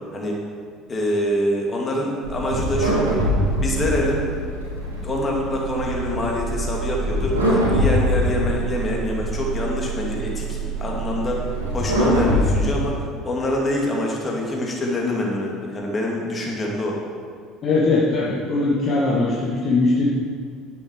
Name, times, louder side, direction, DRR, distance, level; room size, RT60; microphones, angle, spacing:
voice 1, 0.1-0.4 0.9-3.1 3.6-4.2 5.0-17.0, left 1 dB, 30° left, -1 dB, 2.4 m, -25 dB
sound 1, 2.2-12.9, right 1 dB, 80° right, 2.7 m, -23 dB
voice 2, 17.6-20.1, left 3 dB, 45° left, -5 dB, 1.5 m, -20 dB
10.0 x 8.3 x 4.8 m, 2.1 s
figure-of-eight pair, 60°, 0 cm